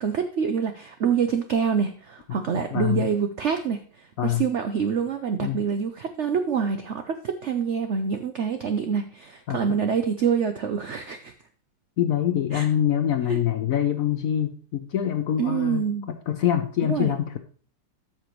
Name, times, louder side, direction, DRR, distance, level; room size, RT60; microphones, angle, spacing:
voice 1, 0.0-11.3 12.5-12.7 13.3-13.4 15.4-16.1 16.8-17.1, right 6 dB, 90° right, 8 dB, 0.6 m, -26 dB
voice 2, 2.7-3.1 4.2-4.4 5.4-5.7 9.5-9.8 12.0-17.4, left 10 dB, 70° left, 8 dB, 0.8 m, -25 dB
13.0 x 6.0 x 3.0 m, 0.42 s
omnidirectional pair, 2.0 m